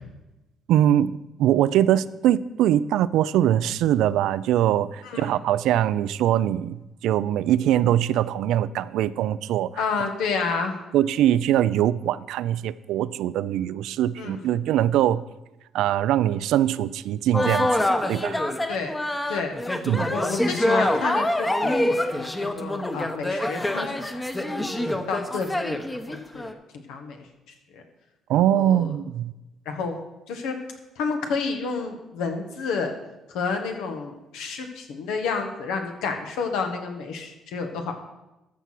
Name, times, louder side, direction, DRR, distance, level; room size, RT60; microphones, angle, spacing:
voice 1, 0.7-9.7 10.9-15.2 15.7-18.4 19.9-20.1 28.3-29.3, right 11 dB, 80° right, 17 dB, 0.3 m, -22 dB
voice 2, 5.0-5.4 9.8-10.7 14.2-14.4 18.7-18.9 19.3-19.6 20.1-21.8 22.1-23.9 24.8-27.2 27.7-27.8 28.5-28.9 29.6-30.0 30.3-30.5 31.0-32.9 33.3-38.0, left 4 dB, 85° left, 4 dB, 1.4 m, -30 dB
sound 1, 17.3-26.5, left 1 dB, 15° left, 0.9 m, -25 dB
13.5 x 4.6 x 5.9 m, 1.0 s
cardioid pair, 85°, 0 cm